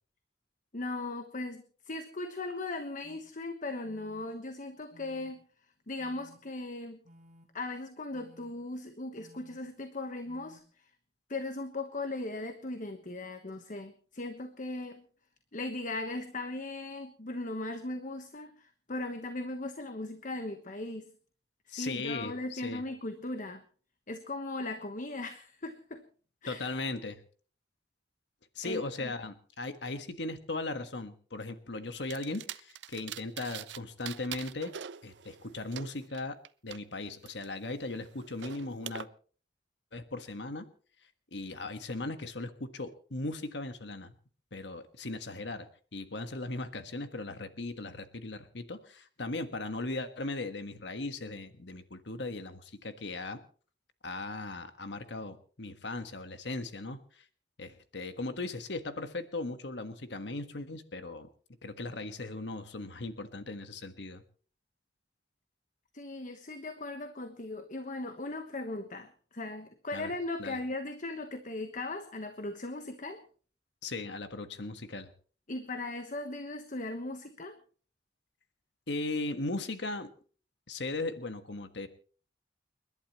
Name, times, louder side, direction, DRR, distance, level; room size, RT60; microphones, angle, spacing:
voice 1, 0.7-5.4 5.9-7.0 7.5-10.9 11.3-15.0 15.5-21.1 21.7-23.6 24.1-26.0 26.4-26.7 28.6-29.1 65.9-73.2 75.5-77.6, left 2 dB, 45° left, 7 dB, 1.2 m, -38 dB
sound 1, 3.0-3.2 3.8-4.3 4.9-5.3 6.0-6.4 7.0-7.5 8.1-8.5 9.2-9.6 10.2-10.6, equal, 50° right, 5.7 m, -57 dB
voice 2, 21.7-22.8 26.5-27.2 28.5-34.7 35.0-39.1 39.9-40.7 41.3-44.1 44.5-53.4 54.0-57.2 57.6-61.3 61.6-64.2 69.9-70.1 70.4-70.6 73.8-75.1 78.9-80.1 80.7-81.9, left 2 dB, 70° left, 9 dB, 1.5 m, -38 dB
sound 2, 32.1-33.8 34.0-36.8 37.2-39.0, right 9 dB, 75° right, 0.6 m, -44 dB
30.0 x 11.5 x 3.1 m, 0.42 s
head